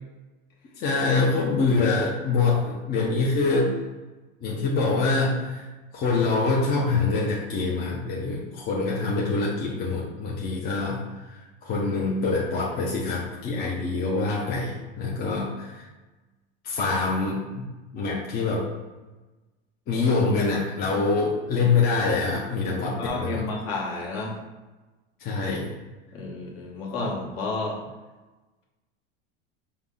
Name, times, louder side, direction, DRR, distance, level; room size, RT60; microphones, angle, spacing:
voice 1, 0.8-3.7 4.4-15.9 16.6-17.7 17.9-18.6 19.9-23.5 25.2-25.8, left 3 dB, 30° left, -4 dB, 0.6 m, -25 dB
voice 2, 23.0-24.4 26.1-27.8, left 3 dB, 50° left, -2 dB, 1.2 m, -31 dB
5.3 x 2.0 x 3.7 m, 1.2 s
supercardioid pair, 135°, 30 cm